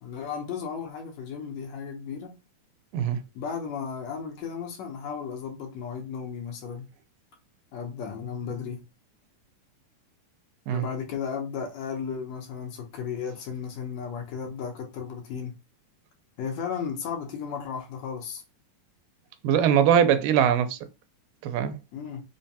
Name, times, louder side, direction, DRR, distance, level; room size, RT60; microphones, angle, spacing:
voice 1, 0.0-2.3 3.3-6.8 7.7-8.8 10.7-15.5 16.4-18.4 21.9-22.2, left 6 dB, 70° left, 1.8 m, -34 dB
voice 2, 19.4-20.8 21.4-21.8, right 9 dB, 90° right, 2.2 m, -21 dB
5.2 x 2.2 x 2.7 m
omnidirectional pair, 3.8 m